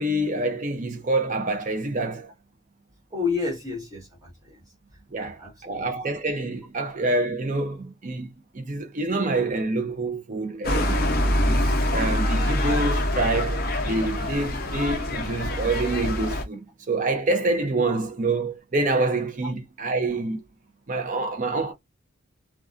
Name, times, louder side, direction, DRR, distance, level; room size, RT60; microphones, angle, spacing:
voice 1, 0.0-2.3 5.1-11.0 11.4-11.6 11.9-20.4 20.9-21.7, right 2 dB, 35° right, 0.5 m, -27 dB
voice 2, 3.1-4.6 5.2-5.9 19.4-19.5, left 4 dB, 15° right, 1.2 m, -31 dB
sound 1, 10.6-16.4, left 1 dB, 45° left, 0.6 m, -25 dB
2.4 x 2.2 x 2.4 m
head